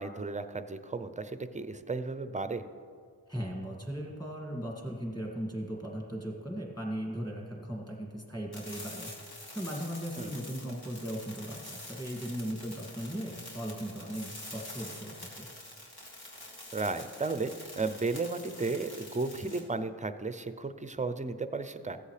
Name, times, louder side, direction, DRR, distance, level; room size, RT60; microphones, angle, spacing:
voice 1, 0.0-2.6 10.2-10.3 16.7-22.0, right 3 dB, 15° right, 11 dB, 0.5 m, -34 dB
voice 2, 3.3-15.5, equal, 10° left, -1 dB, 2.1 m, -38 dB
sound 1, 8.5-19.6, left 1 dB, 55° left, 2.0 m, -46 dB
15.0 x 8.0 x 3.3 m, 2.2 s
cardioid pair, 60°, 45 cm